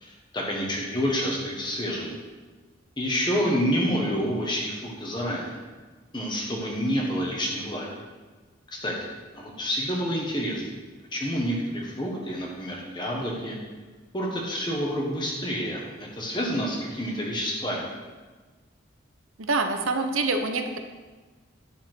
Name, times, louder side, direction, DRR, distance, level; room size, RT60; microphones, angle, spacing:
voice 1, 0.0-2.2 3.0-5.6 6.1-7.9 8.8-10.6 11.1-13.5 14.1-17.9, equal, 20° left, -2 dB, 1.3 m, -28 dB
voice 2, 19.5-20.8, right 3 dB, 90° right, 6 dB, 0.9 m, -25 dB
10.5 x 6.9 x 4.6 m, 1.3 s
head